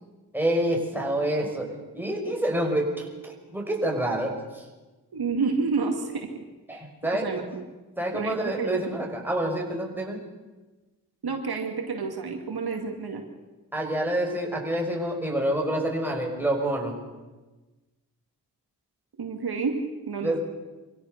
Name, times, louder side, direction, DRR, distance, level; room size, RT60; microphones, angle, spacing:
voice 1, 0.3-4.6 6.7-7.3 8.0-10.2 13.7-16.9 20.2-20.4, right 1 dB, 5° right, 0 dB, 6.2 m, -27 dB
voice 2, 5.1-6.3 6.7-6.8 7.1-7.6 8.1-9.0 11.2-13.2 19.2-20.5, right 4 dB, 70° right, 3 dB, 2.4 m, -29 dB
25.0 x 16.0 x 6.7 m, 1.2 s
cardioid pair, 50°, 39 cm